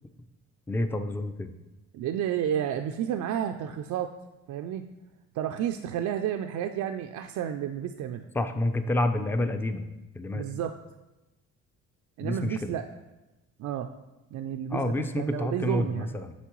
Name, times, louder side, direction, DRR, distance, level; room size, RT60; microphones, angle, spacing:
voice 1, 0.7-1.5 8.3-9.8 10.1-10.4 12.2-12.7 14.7-16.3, left 1 dB, 5° left, 9 dB, 0.4 m, -29 dB
voice 2, 1.9-4.1 4.5-4.9 5.3-8.3 10.3-10.8 12.2-12.9 13.6-13.9 14.3-16.1, right 9 dB, 70° right, 5 dB, 0.4 m, -31 dB
8.2 x 5.3 x 3.0 m, 0.99 s
cardioid pair, 90°, 30 cm